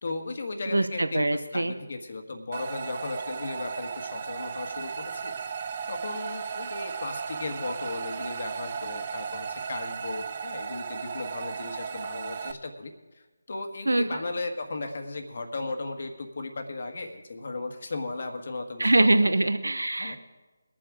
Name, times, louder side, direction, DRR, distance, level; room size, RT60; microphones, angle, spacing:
voice 1, 0.0-5.4 5.9-12.9 13.5-19.3 20.0-20.2, left 3 dB, 55° left, 5 dB, 1.5 m, -36 dB
voice 2, 0.7-1.7 13.9-14.1 18.8-20.2, right 2 dB, 80° right, 10 dB, 0.8 m, -23 dB
sound 1, 2.5-12.5, right 6 dB, 35° right, 0.7 m, -35 dB
22.0 x 7.5 x 4.9 m, 1.2 s
figure-of-eight pair, 155°, 0 cm